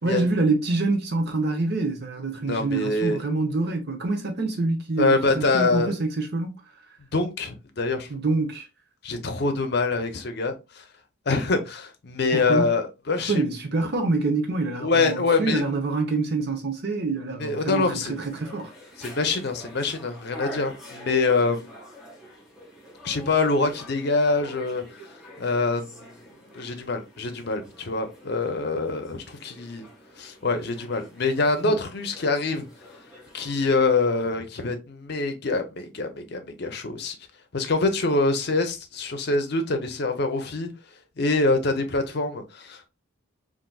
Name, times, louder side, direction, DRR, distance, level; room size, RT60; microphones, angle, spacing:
voice 1, 0.0-6.6 8.1-8.7 12.3-12.8 13.2-18.7 31.6-31.8, right 3 dB, 55° right, 0.8 m, -26 dB
voice 2, 2.5-3.2 5.0-5.9 7.1-8.1 9.0-10.8 11.3-13.4 14.8-15.6 17.4-18.1 19.0-21.8 23.0-24.8 25.4-26.1 26.5-29.8 30.2-32.7 33.3-37.2 37.5-40.7 41.2-42.9, left 3 dB, 55° left, 0.6 m, -25 dB
sound 1, 18.0-34.3, left 1 dB, 5° right, 1.2 m, -46 dB
3.9 x 2.6 x 2.2 m
head